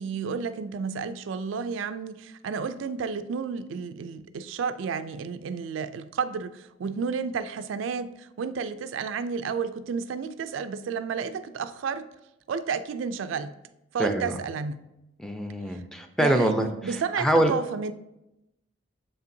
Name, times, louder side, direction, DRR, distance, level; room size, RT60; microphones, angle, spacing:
voice 1, 0.0-12.1 12.5-13.5 13.9-14.8 15.7-15.8 16.2-17.9, right 5 dB, 80° right, 0.3 m, -31 dB
voice 2, 14.0-14.4 15.2-17.5, right 1 dB, 5° left, 0.4 m, -25 dB
7.2 x 5.4 x 2.6 m
head